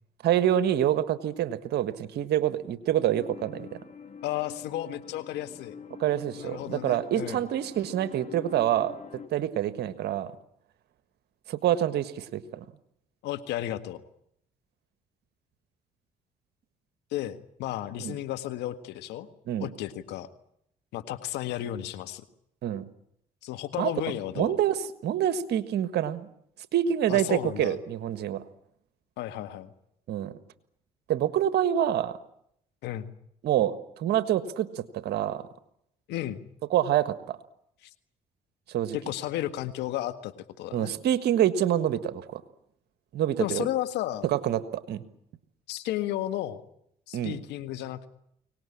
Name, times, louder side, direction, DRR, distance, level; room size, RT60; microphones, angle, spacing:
voice 1, 0.2-3.8 6.0-9.0 9.3-10.3 11.5-12.6 18.0-18.1 19.5-19.7 22.6-22.8 23.8-23.9 24.4-26.3 26.7-28.4 30.1-30.3 31.1-32.2 33.4-35.4 36.7-37.4 38.7-39.0 40.7-42.4 43.1-43.7 44.2-45.0 47.1-47.4, right 11 dB, 75° right, 12 dB, 1.6 m, -26 dB
sound 1, 3.1-9.3, left 5 dB, 45° left, 2.8 m, -45 dB
voice 2, 4.2-5.8 6.4-7.4 13.2-14.0 17.1-19.3 19.6-20.3 20.9-22.2 23.4-24.6 27.1-27.8 29.2-29.7 32.8-33.1 36.1-36.4 38.9-40.9 43.4-44.2 45.7-46.6 47.1-48.1, left 13 dB, 80° left, 10 dB, 1.7 m, -33 dB
24.0 x 19.0 x 10.0 m, 0.75 s
supercardioid pair, 55°, 17 cm